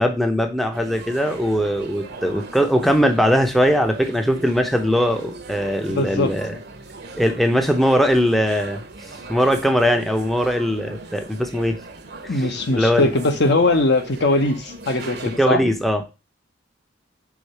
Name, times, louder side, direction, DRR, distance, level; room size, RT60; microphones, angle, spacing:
voice 1, 0.0-6.6 7.1-8.8 9.3-11.8 12.2-13.1 15.4-16.0, equal, ahead, 0.6 m, -20 dB
sound 1, 0.7-15.4, right 3 dB, 55° right, 0.8 m, -38 dB
voice 2, 5.9-6.3 12.3-15.6, left 2 dB, 60° left, 0.9 m, -20 dB
4.9 x 3.8 x 5.5 m
head